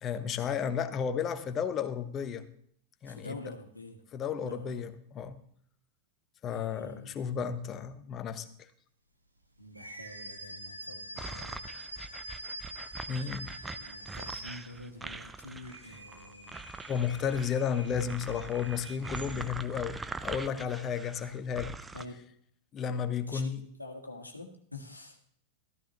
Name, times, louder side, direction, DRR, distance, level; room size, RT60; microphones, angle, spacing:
voice 1, 0.0-2.5 3.0-3.3 4.1-5.4 6.4-8.7 13.1-13.5 16.9-21.7 22.7-23.6, left 7 dB, 30° left, 11 dB, 1.0 m, -33 dB
voice 2, 3.0-4.0 4.4-4.9 6.5-7.2 9.6-11.6 13.7-16.5 21.9-22.2 23.3-25.2, left 2 dB, 85° left, 2 dB, 1.6 m, -47 dB
sound 1, 9.7-15.0 15.5-19.7, right 2 dB, 85° right, 1.4 m, -45 dB
sound 2, 11.2-22.0, right 3 dB, 10° right, 0.6 m, -43 dB
14.0 x 14.0 x 3.0 m, 0.66 s
figure-of-eight pair, 90°, 0 cm